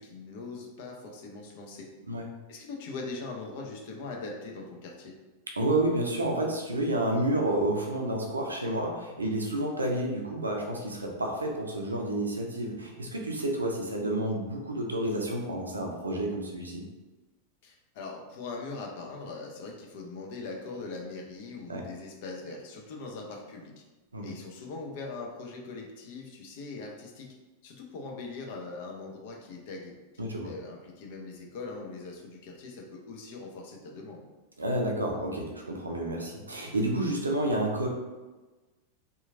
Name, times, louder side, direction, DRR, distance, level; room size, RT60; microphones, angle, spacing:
voice 1, 0.0-1.9 2.5-5.2 17.6-23.8 24.2-27.3 27.6-29.9 30.4-34.3, left 3 dB, 50° left, 1 dB, 0.5 m, -41 dB
voice 2, 5.6-16.8 21.7-21.8 24.1-24.3 30.2-30.5 34.6-37.9, right 1 dB, 80° right, 0 dB, 0.5 m, -30 dB
2.9 x 2.4 x 2.5 m, 1.2 s
figure-of-eight pair, 90°, 0 cm